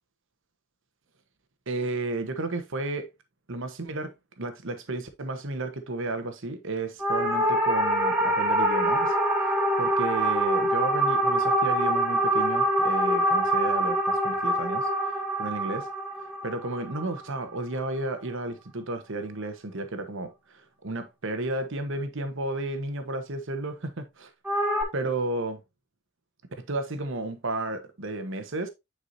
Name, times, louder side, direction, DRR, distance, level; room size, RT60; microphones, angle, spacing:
voice 1, 1.7-3.1 3.5-9.1 9.8-15.9 16.4-24.3 24.9-25.6 26.6-28.7, right 2 dB, 55° right, 1.1 m, -33 dB
sound 1, 7.0-17.5 24.4-24.8, right 1 dB, 5° right, 1.8 m, -25 dB
9.4 x 4.8 x 2.7 m
head